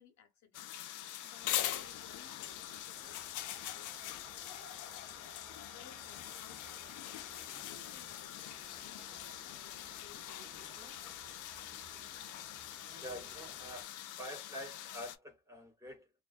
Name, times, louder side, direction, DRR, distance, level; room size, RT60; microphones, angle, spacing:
voice 1, 0.0-4.6 5.2-10.5, left 8 dB, 65° left, 0.8 m, -62 dB
sound 1, 0.5-15.2, left 12 dB, 80° left, 0.5 m, -43 dB
sound 2, 1.4-13.8, right 3 dB, 25° right, 1.0 m, -59 dB
voice 2, 13.0-16.1, equal, 10° right, 1.2 m, -47 dB
2.5 x 2.2 x 2.4 m
cardioid pair, 90°, 30 cm